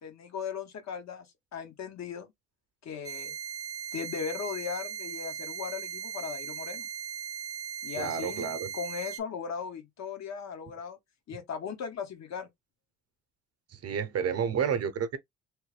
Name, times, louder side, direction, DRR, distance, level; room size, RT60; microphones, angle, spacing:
voice 1, 0.0-2.3 2.8-3.3 3.9-6.9 7.8-8.5 8.7-11.0 11.3-12.5, left 6 dB, 60° left, 1.0 m, -38 dB
sound 1, 3.0-9.2, right 8 dB, 10° right, 0.5 m, -38 dB
voice 2, 8.0-8.7 13.7-15.2, right 7 dB, 55° right, 0.7 m, -30 dB
3.2 x 2.1 x 3.2 m
cardioid pair, 90°, 30 cm